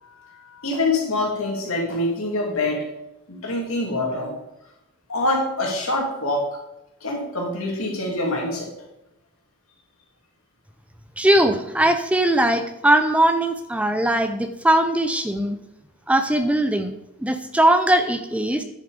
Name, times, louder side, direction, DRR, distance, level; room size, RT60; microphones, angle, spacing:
voice 1, 0.0-2.9 3.3-4.3 5.1-6.5 7.0-8.7, left 2 dB, 80° left, 0 dB, 2.8 m, -25 dB
voice 2, 11.2-15.6 16.1-16.9 17.2-18.6, right 1 dB, 5° right, 8 dB, 0.5 m, -20 dB
9.8 x 7.1 x 5.1 m, 0.90 s
head